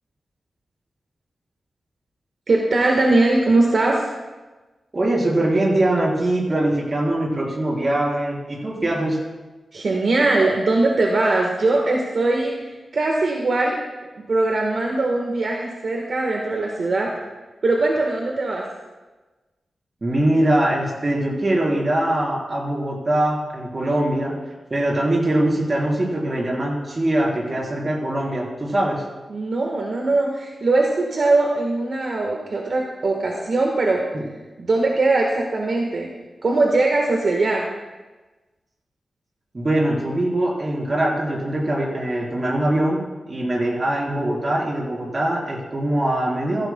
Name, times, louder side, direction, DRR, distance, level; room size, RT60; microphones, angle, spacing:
voice 1, 2.5-4.1 9.7-13.8 14.2-17.1 17.6-18.7 29.3-34.1 34.6-36.1 36.4-37.7, right 2 dB, 60° right, 0 dB, 1.3 m, -21 dB
voice 2, 4.9-9.2 20.0-24.3 24.7-29.0 34.1-34.2 39.5-43.0 43.3-46.7, right 1 dB, 30° right, -3 dB, 3.8 m, -22 dB
15.5 x 15.5 x 2.2 m, 1.2 s
wide cardioid pair, 125°, 0 cm